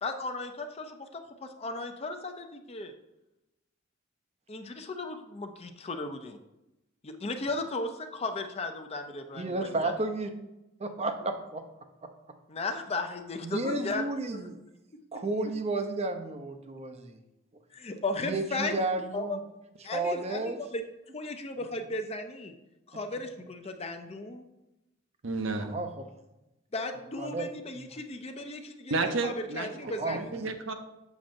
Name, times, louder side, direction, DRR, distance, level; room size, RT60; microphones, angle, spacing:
voice 1, 0.0-2.9 4.5-6.4 7.0-9.9 12.5-14.5 15.4-15.5 17.7-18.8 19.1-19.4 19.8-20.8 21.1-22.5 22.9-24.5 26.7-30.5, left 2 dB, 30° left, 6 dB, 0.5 m, -36 dB
voice 2, 9.4-10.3 10.8-11.6 12.0-12.1 13.4-14.6 15.1-17.2 18.2-19.4 19.8-20.6 25.7-26.0 27.2-27.5 27.7-27.9 29.8-30.2, right 2 dB, 30° right, 7 dB, 0.6 m, -32 dB
voice 3, 25.2-25.8 28.9-29.7 30.1-30.7, right 3 dB, 65° right, 6 dB, 0.7 m, -31 dB
7.2 x 6.3 x 2.6 m, 0.93 s
head